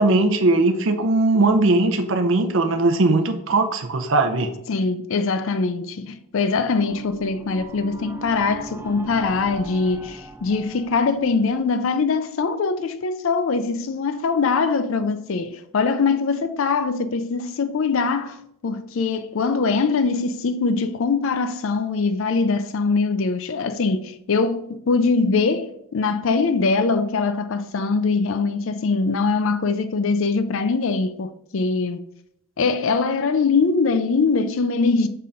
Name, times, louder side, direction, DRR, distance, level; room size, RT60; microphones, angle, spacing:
voice 1, 0.0-4.5, right 2 dB, 60° right, 0.6 m, -19 dB
voice 2, 4.7-32.0 32.6-35.1, left 4 dB, 60° left, 0.4 m, -22 dB
sound 1, 6.7-11.7, right 1 dB, 10° right, 0.4 m, -39 dB
5.5 x 3.7 x 5.6 m
head